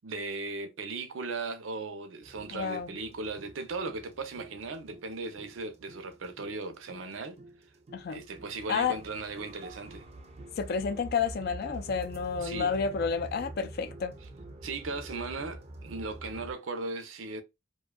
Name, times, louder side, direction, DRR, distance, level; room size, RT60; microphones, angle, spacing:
voice 1, 0.0-7.4 8.1-10.1 12.4-12.7 14.6-17.4, right 3 dB, 85° right, 0.6 m, -37 dB
sound 1, 2.2-16.5, right 1 dB, 35° right, 0.4 m, -47 dB
voice 2, 2.5-2.9 7.9-8.2 8.7-9.0 10.6-14.1, left 6 dB, 50° left, 0.4 m, -30 dB
2.6 x 2.2 x 2.2 m
head